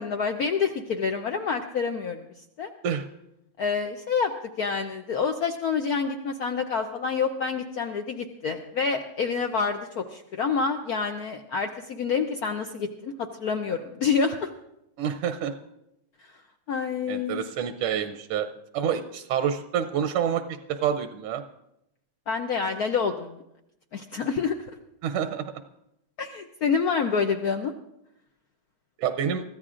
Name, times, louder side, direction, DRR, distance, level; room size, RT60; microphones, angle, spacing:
voice 1, 0.0-2.3 2.6-2.7 3.6-14.5 16.7-17.4 22.3-23.4 23.9-24.6 26.2-27.7, left 5 dB, 75° left, 5 dB, 0.8 m, -27 dB
voice 2, 15.0-15.5 17.1-18.5 18.7-20.4 20.7-21.4 25.0-25.4 29.0-29.4, right 8 dB, 85° right, 7 dB, 1.6 m, -27 dB
23.5 x 14.0 x 2.5 m, 0.84 s
omnidirectional pair, 2.4 m